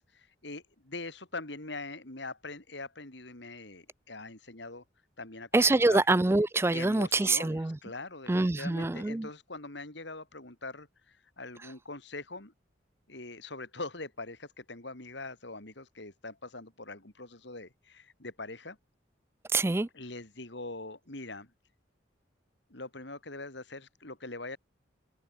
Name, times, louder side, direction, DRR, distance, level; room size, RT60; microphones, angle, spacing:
voice 1, 0.0-4.8 5.2-6.1 6.7-12.5 13.1-18.8 19.9-21.5 22.7-24.6, left 2 dB, 65° left, 3.1 m, -43 dB
voice 2, 5.5-7.8 8.3-9.3 19.5-19.9, right 2 dB, 15° right, 0.3 m, -25 dB
head